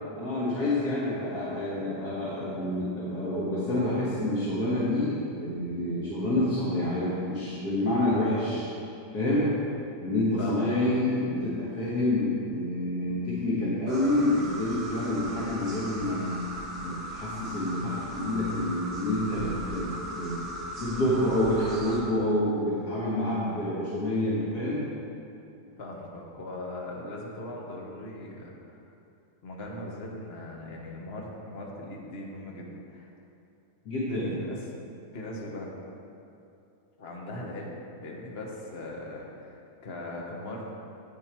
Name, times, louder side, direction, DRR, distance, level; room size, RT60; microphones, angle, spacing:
voice 1, 0.2-8.7 9.1-9.5 10.0-16.5 16.8-20.4 20.8-24.8 33.9-34.4, left 1 dB, 70° left, -8 dB, 2.2 m, -28 dB
voice 2, 10.4-10.9 25.8-28.8 29.4-33.1 34.1-34.6 35.1-35.7 37.0-40.7, left 1 dB, 40° left, -2 dB, 1.5 m, -39 dB
sound 1, 13.9-22.0, right 1 dB, 45° right, 2.0 m, -38 dB
10.5 x 9.0 x 4.6 m, 2.7 s
omnidirectional pair, 1.8 m